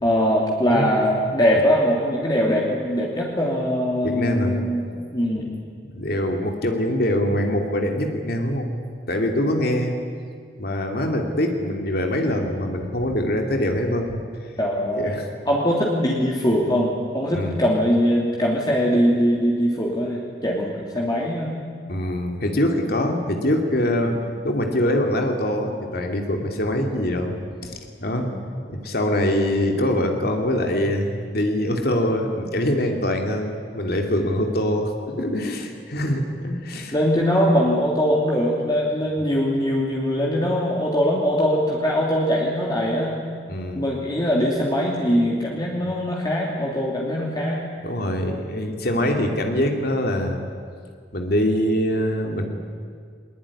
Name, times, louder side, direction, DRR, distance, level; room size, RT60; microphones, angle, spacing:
voice 1, 0.0-5.5 14.6-15.1 15.5-21.5 28.1-28.4 34.2-34.5 36.9-43.2 43.7-47.6 48.9-49.2, equal, 25° left, -3 dB, 2.8 m, -22 dB
voice 2, 4.0-4.6 5.4-5.5 5.9-8.7 9.1-9.9 10.6-14.2 15.0-15.3 17.3-17.6 21.9-24.2 24.4-27.4 27.6-28.3 28.7-36.9 43.5-43.8 47.8-50.5 51.1-52.5, left 1 dB, 60° left, 3 dB, 2.5 m, -24 dB
21.5 x 20.5 x 9.9 m, 2.1 s
head